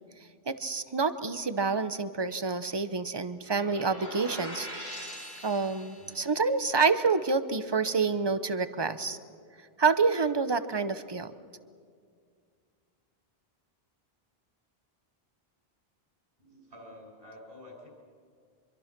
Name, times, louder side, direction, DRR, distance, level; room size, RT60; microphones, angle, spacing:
voice 1, 0.5-5.1 5.4-9.2 9.8-11.3, right 4 dB, 25° right, 12 dB, 0.8 m, -28 dB
sound 1, 3.5-6.3, equal, 80° left, 5.3 m, -42 dB
voice 2, 16.4-17.9, left 1 dB, 65° right, 0 dB, 6.9 m, -49 dB
25.5 x 23.5 x 6.0 m, 2.1 s
omnidirectional pair, 1.0 m